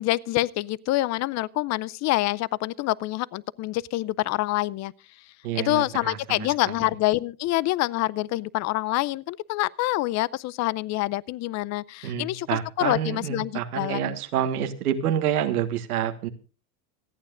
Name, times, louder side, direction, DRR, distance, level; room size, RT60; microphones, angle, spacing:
voice 1, 0.0-4.9 5.6-14.1, left 17 dB, 40° left, 0.5 m, -26 dB
voice 2, 5.4-6.7 12.0-16.3, right 10 dB, 90° right, 1.5 m, -28 dB
26.0 x 9.1 x 2.5 m
supercardioid pair, 105°, 43 cm